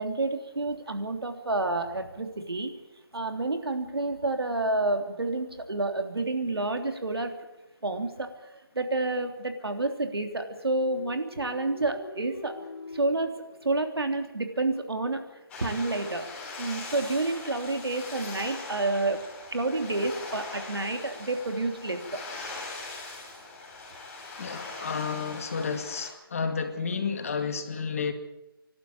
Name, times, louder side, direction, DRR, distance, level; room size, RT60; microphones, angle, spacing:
voice 1, 0.0-2.7 3.1-7.3 7.8-12.6 12.9-13.3 13.6-15.2 15.6-16.3 16.6-22.2, right 2 dB, 90° right, 5 dB, 3.3 m, -29 dB
sound 1, 10.6-14.4, left 4 dB, 90° left, 3.2 m, -45 dB
sound 2, 15.5-26.1, left 3 dB, 10° left, 3.5 m, -41 dB
voice 2, 24.4-28.1, left 5 dB, 35° left, 6 dB, 2.1 m, -31 dB
27.0 x 12.0 x 8.7 m, 0.97 s
figure-of-eight pair, 165°, 12 cm